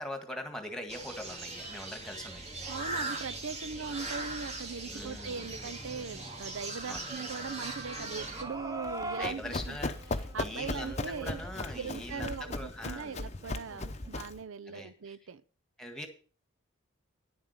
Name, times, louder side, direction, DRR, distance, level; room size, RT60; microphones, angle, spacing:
voice 1, 0.0-2.5 4.9-5.5 6.9-7.1 9.2-13.2 14.7-15.2 15.8-16.1, left 1 dB, 5° left, 1.7 m, -42 dB
sound 1, 0.9-8.4, right 2 dB, 30° right, 2.2 m, -40 dB
sound 2, 2.7-14.2, right 1 dB, 15° right, 0.8 m, -46 dB
voice 2, 2.7-9.8 10.3-11.4 11.7-15.4, right 5 dB, 85° right, 0.6 m, -40 dB
Run, 8.9-14.4, left 2 dB, 35° left, 0.7 m, -37 dB
10.5 x 7.3 x 6.6 m
head